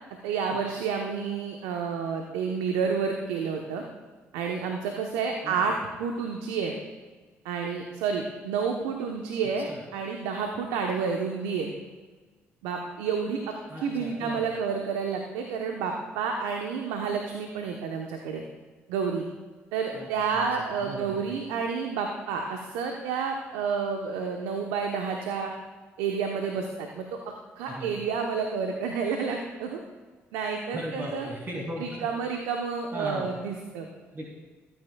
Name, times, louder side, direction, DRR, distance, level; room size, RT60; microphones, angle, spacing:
voice 1, 0.2-3.8 4.3-6.7 7.4-11.7 12.6-18.4 18.9-19.2 19.7-25.5 26.0-29.8 30.3-31.3 31.8-33.9, right 5 dB, 75° right, 3 dB, 1.0 m, -30 dB
voice 2, 13.7-14.4 19.9-21.3 27.6-28.0 30.7-32.1 32.9-33.4 34.1-34.3, equal, 35° right, -4 dB, 2.9 m, -37 dB
22.5 x 9.2 x 2.3 m, 1.4 s
hypercardioid pair, 50°, 6 cm